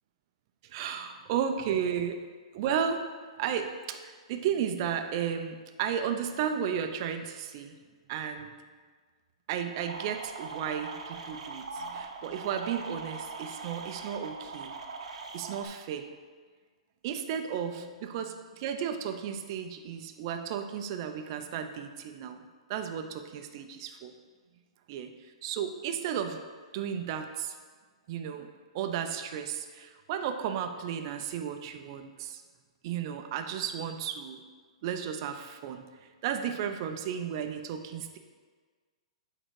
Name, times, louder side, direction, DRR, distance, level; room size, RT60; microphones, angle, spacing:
voice 1, 0.6-2.2 2.5-3.1 3.4-7.7 8.1-8.5 9.5-14.7 15.3-16.1 17.0-22.4 22.7-24.1 24.9-25.1 25.4-26.4 26.7-27.6 28.1-28.5 28.7-32.4 32.8-34.4 34.8-38.2, right 8 dB, 45° right, 7 dB, 0.7 m, -34 dB
sound 1, 9.8-15.7, right 4 dB, 80° right, 1.0 m, -41 dB
8.8 x 3.9 x 4.8 m, 1.5 s
hypercardioid pair, 140°, 3 cm